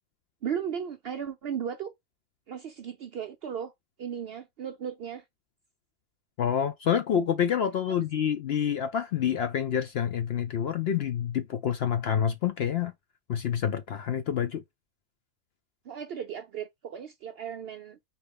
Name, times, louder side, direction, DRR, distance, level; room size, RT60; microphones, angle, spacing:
voice 1, 0.4-1.9 2.5-3.7 4.0-5.2 15.9-18.0, right 8 dB, 65° right, 0.6 m, -36 dB
voice 2, 6.4-12.9 13.3-14.6, left 8 dB, 65° left, 0.6 m, -27 dB
4.3 x 3.2 x 3.4 m
omnidirectional pair, 1.5 m